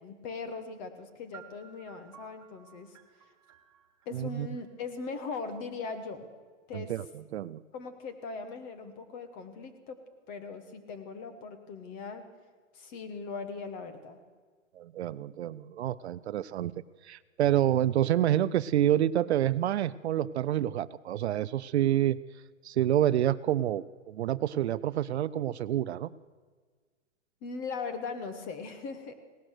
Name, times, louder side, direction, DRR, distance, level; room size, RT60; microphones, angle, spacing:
voice 1, 0.0-3.0 4.0-6.3 6.7-6.9 7.7-10.0 10.3-12.2 12.7-14.2 27.4-29.1, left 4 dB, 20° left, 9 dB, 1.3 m, -39 dB
sound 1, 1.3-5.2, right 9 dB, 25° right, 0.8 m, -56 dB
voice 2, 4.1-4.5 6.7-7.1 7.3-7.6 14.8-16.7 17.0-22.2 22.6-26.1, right 12 dB, 60° right, 17 dB, 0.5 m, -28 dB
17.5 x 12.5 x 6.5 m, 1.5 s
hypercardioid pair, 160°, 37 cm